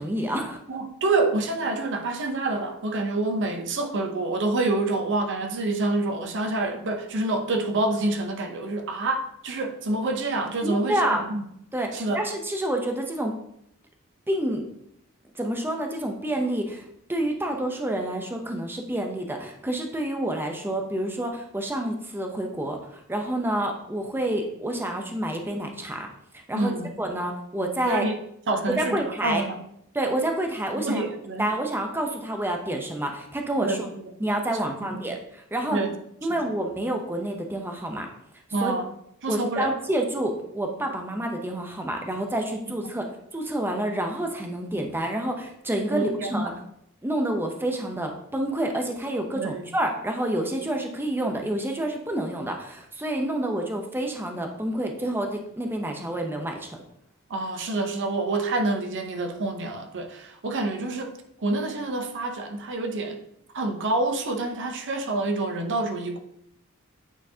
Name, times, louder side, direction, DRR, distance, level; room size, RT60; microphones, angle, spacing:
voice 1, 0.0-0.6 10.6-11.2 11.7-13.3 14.3-14.6 15.3-28.0 28.7-29.4 29.9-31.0 31.4-33.9 34.2-35.8 36.2-38.1 38.6-38.7 39.3-46.6 47.0-56.8, right 1 dB, 10° right, 0.6 m, -28 dB
voice 2, 0.7-11.4 11.9-12.3 26.5-26.9 27.9-29.6 30.8-31.6 33.6-33.9 34.8-35.0 35.7-35.9 36.3-36.4 38.5-38.9 39.2-39.7 45.9-46.5 49.3-49.6 57.3-63.2 63.5-66.2, right 2 dB, 55° right, 0.7 m, -27 dB
8.8 x 4.4 x 2.7 m
head